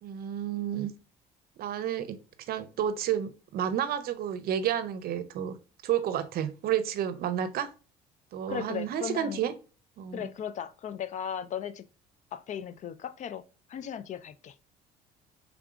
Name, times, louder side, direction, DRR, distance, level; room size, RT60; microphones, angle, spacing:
voice 1, 0.0-0.9 1.6-5.6 5.8-7.7 8.3-9.5 10.0-10.3, right 9 dB, 65° right, 0.6 m, -31 dB
voice 2, 8.5-9.4 10.1-11.8 12.3-13.4 13.7-14.5, left 8 dB, 45° left, 0.4 m, -36 dB
4.8 x 3.5 x 2.4 m
cardioid pair, 110°, 17 cm